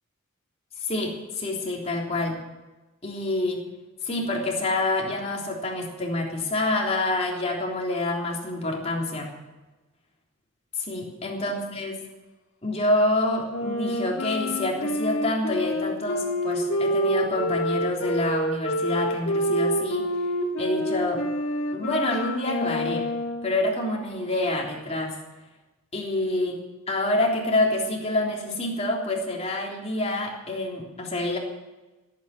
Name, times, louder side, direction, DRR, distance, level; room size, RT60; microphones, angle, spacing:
voice 1, 0.8-2.4 3.0-3.6 4.0-9.3 10.8-11.9 12.6-20.3 20.6-21.2 21.7-23.0 23.4-25.2 25.9-26.5 26.9-31.4, left 2 dB, 30° left, -1 dB, 3.5 m, -27 dB
Wind instrument woodwind instrument, 13.5-23.5, equal, 70° left, 2.3 m, -27 dB
17.0 x 9.1 x 8.3 m, 1.1 s
head